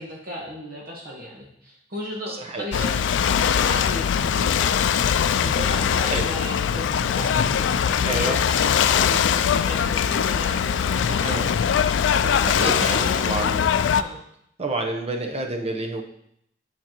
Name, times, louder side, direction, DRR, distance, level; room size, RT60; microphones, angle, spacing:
voice 1, 0.0-3.1 3.4-4.8 5.3-13.4 13.9-14.2, equal, 55° right, -3 dB, 1.4 m, -35 dB
voice 2, 2.3-2.9 6.0-6.2 8.1-8.4 11.2-11.5 12.6-13.7 14.6-16.0, right 2 dB, 35° right, 3 dB, 0.9 m, -29 dB
Ocean / Boat Water vehicle, 2.7-14.0, left 8 dB, 80° left, 0.3 m, -21 dB
9.1 x 5.7 x 3.0 m, 0.71 s
head